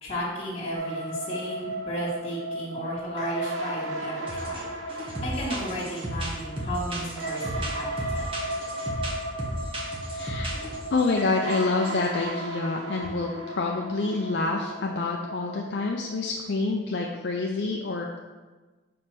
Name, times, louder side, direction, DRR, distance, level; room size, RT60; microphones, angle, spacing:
voice 1, 0.0-8.3, equal, 30° left, -10 dB, 1.5 m, -34 dB
sound 1, 0.7-16.3, right 1 dB, 85° right, 1.1 m, -35 dB
sound 2, 4.3-4.6 4.9-11.1 11.5-12.1, right 1 dB, 30° right, 1.1 m, -34 dB
voice 2, 10.1-10.5 10.9-18.2, left 3 dB, 60° left, 1 dB, 0.5 m, -27 dB
5.1 x 4.3 x 5.9 m, 1.3 s
head